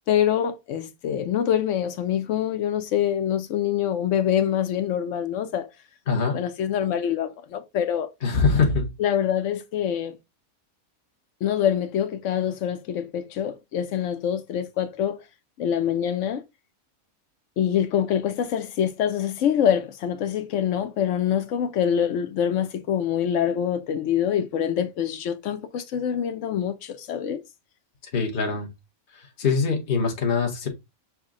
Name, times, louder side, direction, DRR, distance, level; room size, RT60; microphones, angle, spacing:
voice 1, 0.1-5.7 6.3-8.1 9.0-10.2 11.4-15.2 15.6-16.4 17.6-27.4, left 9 dB, 65° left, 0.9 m, -25 dB
voice 2, 6.1-6.4 8.2-8.9 28.0-28.7 29.1-30.7, left 4 dB, 40° left, 1.0 m, -23 dB
5.9 x 2.1 x 3.5 m
omnidirectional pair, 1.5 m